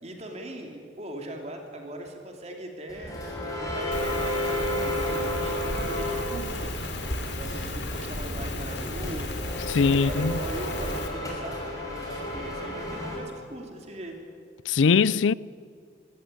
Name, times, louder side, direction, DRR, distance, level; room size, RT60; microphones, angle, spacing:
voice 1, 0.0-3.2 3.6-6.8 7.2-9.3 9.7-14.2, right 1 dB, 35° right, 2.8 m, -40 dB
sound 1, 2.9-13.2, equal, 20° left, 5.4 m, -33 dB
Rain, 3.9-11.1, left 1 dB, 65° left, 2.9 m, -34 dB
voice 2, 9.7-10.4 14.7-15.3, left 5 dB, 85° left, 0.5 m, -21 dB
24.5 x 14.5 x 9.8 m
head